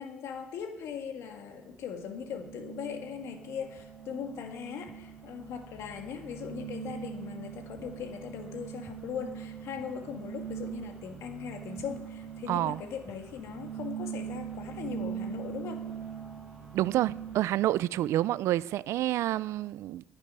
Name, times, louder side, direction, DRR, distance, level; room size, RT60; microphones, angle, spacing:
voice 1, 0.0-15.9, left 7 dB, 80° left, 1.7 m, -39 dB
sound 1, 0.9-17.4, right 8 dB, 5° right, 5.4 m, -42 dB
voice 2, 12.5-12.8 16.7-20.0, right 14 dB, 80° right, 0.4 m, -28 dB
20.0 x 9.0 x 5.5 m
cardioid pair, 145°, 5 cm